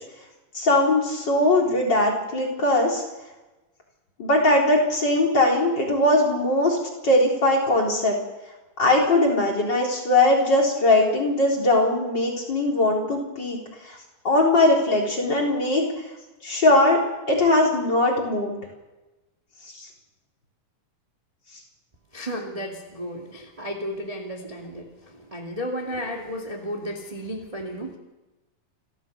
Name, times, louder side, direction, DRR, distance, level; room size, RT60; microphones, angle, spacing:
voice 1, 0.5-3.0 4.2-6.8 7.0-8.2 8.8-13.6 13.9-14.0 14.2-15.8 16.4-17.0 17.3-18.6, left 1 dB, 30° left, -1 dB, 4.3 m, -20 dB
voice 2, 22.1-28.0, equal, 15° right, 0 dB, 1.8 m, -33 dB
29.0 x 13.5 x 6.9 m, 1.1 s
omnidirectional pair, 3.8 m